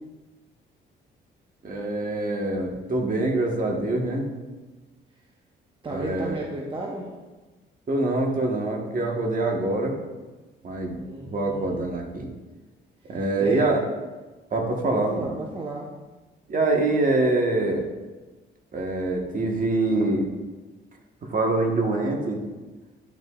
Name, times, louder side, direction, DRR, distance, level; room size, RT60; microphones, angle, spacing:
voice 1, 1.6-4.3 5.9-6.4 7.9-10.0 10.6-12.3 13.1-13.8 14.5-15.3 16.5-17.8 18.7-20.2 21.3-22.4, right 2 dB, 45° right, 1 dB, 1.4 m, -25 dB
voice 2, 5.8-7.1 10.8-11.8 13.0-13.7 15.0-15.9, right 2 dB, 25° right, -2 dB, 0.9 m, -34 dB
10.5 x 5.4 x 2.4 m, 1.2 s
cardioid pair, 90°, 20 cm